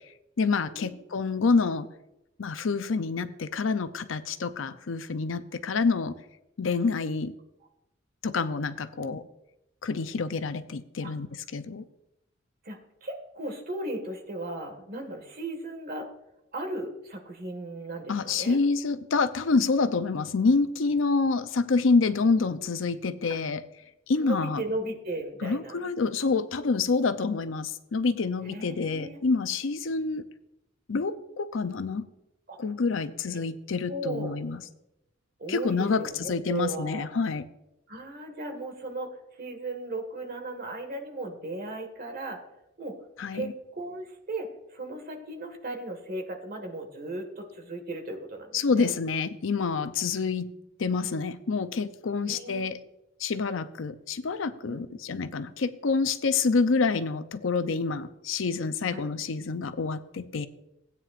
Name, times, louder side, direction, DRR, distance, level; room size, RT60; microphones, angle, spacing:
voice 1, 0.4-1.9 2.4-6.1 6.6-7.3 8.2-9.2 9.8-11.8 18.1-23.6 24.1-24.6 25.4-30.2 30.9-32.1 32.6-34.6 35.5-37.4 43.2-43.5 48.5-50.5 50.8-52.8 53.2-60.5, left 4 dB, 75° left, 11 dB, 0.6 m, -27 dB
voice 2, 12.6-16.1 16.5-18.6 23.3-23.4 24.2-25.8 28.4-29.2 32.5-32.6 33.9-34.3 35.4-37.1 37.9-42.4 42.8-43.0 43.3-48.9 52.2-52.7 54.6-55.0 58.9-59.1, right 2 dB, 50° right, 5 dB, 1.8 m, -36 dB
16.5 x 9.2 x 2.5 m, 0.87 s
head